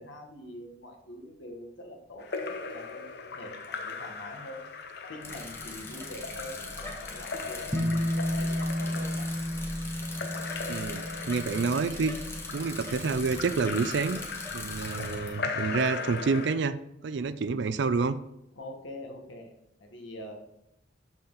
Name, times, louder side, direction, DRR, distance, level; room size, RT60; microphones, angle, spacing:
voice 1, 0.0-4.7 5.1-9.3 18.5-19.5 19.8-20.4, left 1 dB, 70° left, 2 dB, 1.6 m, -44 dB
Splash splatter / Drip / Trickle dribble, 2.2-16.5, left 4 dB, 55° left, 0.7 m, -39 dB
Bicycle, 5.2-15.3, left 2 dB, 15° left, 1.0 m, -41 dB
sound 1, 7.7-14.3, equal, 15° right, 1.0 m, -33 dB
voice 2, 10.7-12.2 12.5-14.2 14.5-18.2, right 4 dB, 60° right, 13 dB, 0.4 m, -28 dB
13.0 x 4.3 x 4.0 m, 0.83 s
head